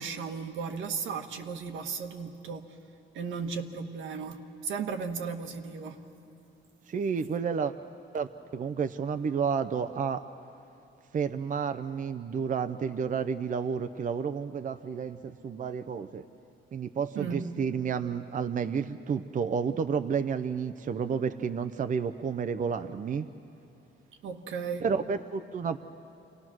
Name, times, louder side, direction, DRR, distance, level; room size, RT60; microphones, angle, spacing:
voice 1, 0.0-2.8 3.1-6.1 17.1-17.6 24.2-24.9, right 5 dB, 80° right, 5 dB, 1.4 m, -35 dB
voice 2, 6.9-7.7 8.1-10.2 11.1-16.3 16.7-23.3 24.8-25.8, right 6 dB, 40° right, 9 dB, 0.6 m, -31 dB
27.5 x 18.5 x 6.2 m, 2.8 s
cardioid pair, 90°, 20 cm